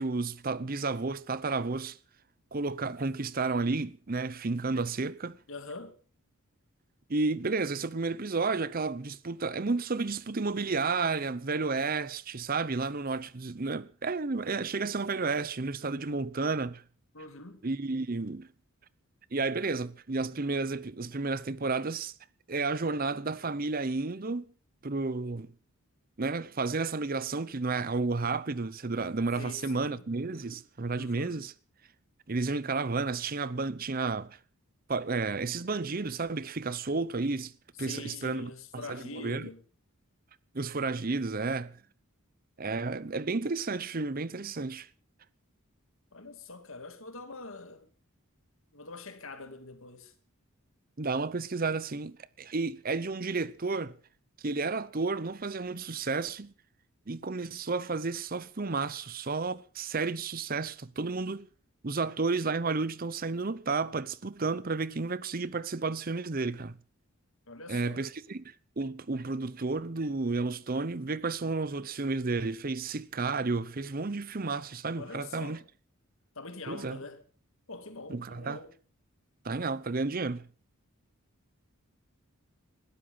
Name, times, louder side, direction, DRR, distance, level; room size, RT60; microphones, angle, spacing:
voice 1, 0.0-2.0 2.5-5.4 7.1-16.8 17.6-18.5 19.3-22.1 22.5-24.4 24.8-25.5 26.2-31.5 32.3-34.4 34.9-37.5 37.8-39.5 40.5-41.8 42.6-44.9 51.0-54.0 54.4-56.5 57.1-61.5 61.8-66.8 67.7-68.4 68.8-75.6 76.7-77.0 78.1-78.6 79.4-80.5, right 3 dB, 40° right, 0.7 m, -32 dB
voice 2, 5.5-6.0 17.1-17.6 29.3-30.1 31.0-31.5 37.8-39.6 46.1-47.9 48.7-50.1 67.5-68.0 75.0-75.6 76.3-77.2 77.7-78.7, left 3 dB, 65° left, 2.4 m, -44 dB
20.5 x 13.0 x 5.6 m
head